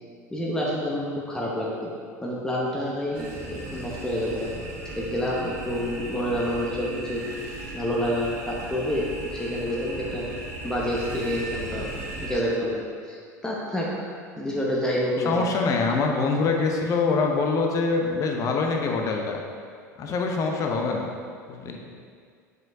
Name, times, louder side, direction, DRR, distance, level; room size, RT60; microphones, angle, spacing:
voice 1, 0.3-1.9 2.2-4.6 5.0-7.5 7.7-10.2 10.6-11.9 12.2-14.1 14.4-15.5, equal, 5° left, -5 dB, 0.9 m, -28 dB
sound 1, 3.1-12.4, right 2 dB, 65° right, 1.4 m, -37 dB
voice 2, 15.3-19.4 20.0-21.1 21.5-21.8, left 4 dB, 35° left, 2 dB, 0.7 m, -24 dB
7.3 x 5.3 x 2.7 m, 2.2 s
figure-of-eight pair, 75°, 9 cm